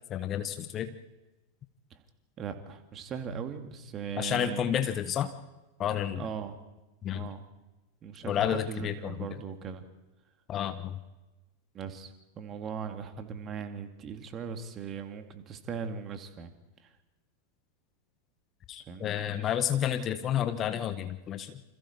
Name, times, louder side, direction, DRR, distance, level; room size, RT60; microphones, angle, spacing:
voice 1, 0.1-0.9 4.2-5.3 5.8-6.3 7.0-7.3 8.2-9.3 10.5-11.0 18.7-21.6, left 10 dB, 30° left, 10 dB, 1.4 m, -30 dB
voice 2, 2.4-4.7 6.2-6.6 7.1-7.4 8.0-9.8 11.7-16.5 16.8-16.9 18.9-19.1 19.3-19.6, right 6 dB, 30° right, 7 dB, 2.4 m, -39 dB
28.5 x 27.0 x 4.5 m, 1.1 s
figure-of-eight pair, 90°, 0 cm